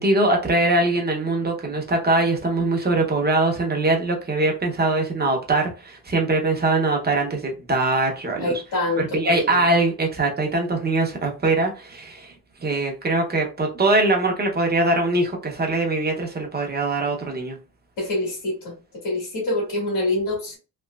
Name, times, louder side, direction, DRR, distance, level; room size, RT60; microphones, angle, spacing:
voice 1, 0.0-8.5 9.1-12.3 12.6-17.6, right 2 dB, 25° right, 0.8 m, -22 dB
voice 2, 8.4-9.7 18.0-20.6, left 2 dB, 55° left, 1.8 m, -26 dB
3.2 x 2.8 x 2.3 m
wide cardioid pair, 160°, 37 cm